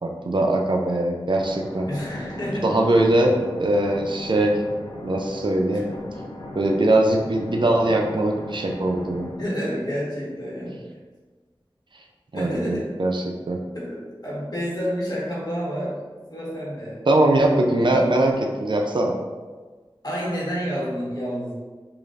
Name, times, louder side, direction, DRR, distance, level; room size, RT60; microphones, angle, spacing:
voice 1, 0.0-1.9 2.6-3.3 3.6-4.6 5.0-5.9 6.6-9.3 12.3-13.6 17.1-19.1, right 1 dB, 60° right, 1 dB, 0.4 m, -21 dB
sound 1, 1.4-9.4, left 2 dB, 65° left, 0.5 m, -38 dB
voice 2, 1.9-2.8 5.7-5.8 9.4-10.9 12.3-12.9 13.7-16.0 16.3-17.0 17.8-18.1 20.0-21.5, equal, 45° left, -6 dB, 1.3 m, -29 dB
4.9 x 2.5 x 2.5 m, 1.3 s
wide cardioid pair, 55°, 9 cm